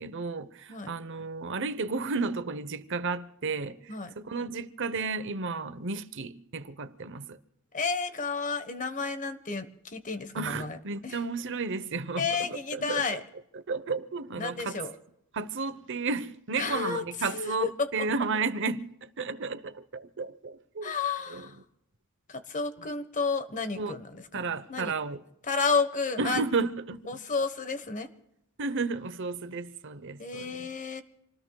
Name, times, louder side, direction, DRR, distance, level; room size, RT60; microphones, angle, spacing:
voice 1, 0.0-7.4 10.3-13.2 13.7-14.8 15.3-20.9 21.3-21.5 23.8-23.9 24.3-25.2 26.2-27.2 28.6-30.7, right 4 dB, 60° right, 1.0 m, -33 dB
voice 2, 7.7-10.8 11.0-11.2 12.2-13.2 14.4-14.9 16.6-18.1 20.8-21.6 22.3-24.4 24.7-24.9 25.5-26.4 27.1-28.1 30.2-31.0, left 4 dB, 35° left, 1.4 m, -31 dB
27.5 x 19.5 x 2.4 m
head